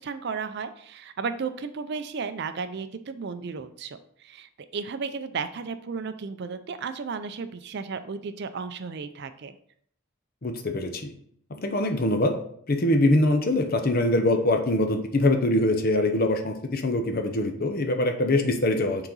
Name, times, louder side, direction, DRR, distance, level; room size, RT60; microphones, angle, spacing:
voice 1, 0.0-9.5, right 5 dB, 50° right, 11 dB, 0.4 m, -34 dB
voice 2, 10.4-11.1 11.5-12.4 12.7-19.1, left 1 dB, 40° left, 6 dB, 0.7 m, -23 dB
7.2 x 3.9 x 3.9 m, 0.65 s
head